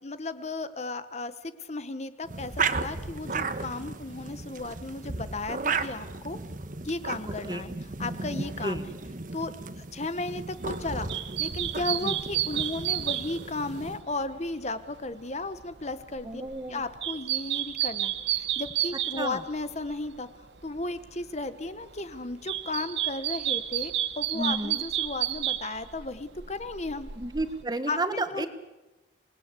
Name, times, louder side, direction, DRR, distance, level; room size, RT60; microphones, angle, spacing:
voice 1, 0.0-6.4 6.8-8.9 9.3-11.1 11.4-16.4 16.7-20.3 20.6-27.1 27.9-28.5, left 2 dB, 40° left, 12 dB, 1.1 m, -35 dB
sound 1, 2.2-14.0, right 4 dB, 45° right, 1.3 m, -35 dB
sound 2, 10.5-20.2 20.4-21.4 21.7-27.6, right 13 dB, 75° right, 1.0 m, -32 dB
voice 2, 16.3-16.8 19.2-19.4 24.4-24.8 27.2-28.5, right 2 dB, 25° right, 10 dB, 1.5 m, -31 dB
27.5 x 20.0 x 8.3 m, 1.1 s
head